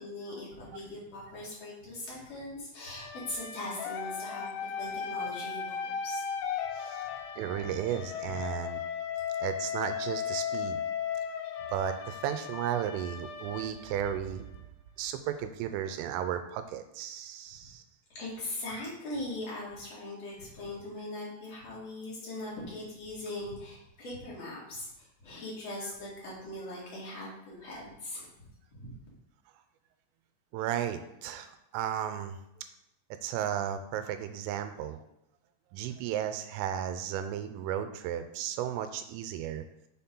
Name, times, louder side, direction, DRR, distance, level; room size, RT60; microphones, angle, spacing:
voice 1, 0.0-6.2 7.9-8.0 18.1-28.5 28.8-28.9, left 1 dB, 45° left, -5 dB, 2.5 m, -40 dB
sound 1, 2.8-14.6, left 7 dB, 90° left, 2.6 m, -36 dB
voice 2, 6.7-7.0 7.4-8.8 9.4-10.9 11.7-14.4 15.0-17.8 27.7-27.8 30.5-32.4 33.2-35.0 35.7-39.6, right 10 dB, 90° right, 9 dB, 3.2 m, -34 dB
7.2 x 4.5 x 5.4 m, 0.83 s
omnidirectional pair, 5.7 m